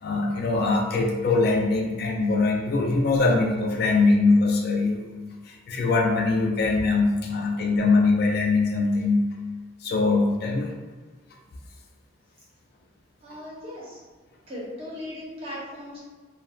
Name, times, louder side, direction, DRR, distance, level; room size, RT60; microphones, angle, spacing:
voice 1, 0.0-9.2 9.8-10.7, left 3 dB, 55° left, 0 dB, 0.4 m, -22 dB
voice 2, 13.2-14.0 14.5-16.0, left 1 dB, 30° right, -7 dB, 0.9 m, -37 dB
3.4 x 2.1 x 2.3 m, 1.3 s
head